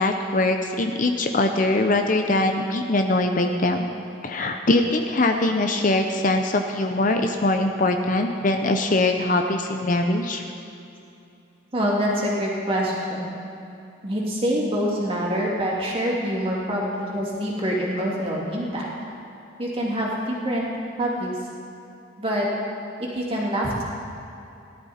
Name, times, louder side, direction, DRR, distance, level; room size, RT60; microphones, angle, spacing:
voice 1, 0.0-3.9 4.2-10.4, left 2 dB, 40° left, 5 dB, 0.7 m, -22 dB
voice 2, 11.7-13.3 14.0-18.9 19.6-20.7 21.0-21.5 22.2-22.5 23.0-23.8, equal, 25° right, -4 dB, 2.6 m, -25 dB
18.0 x 12.0 x 4.3 m, 2.7 s
head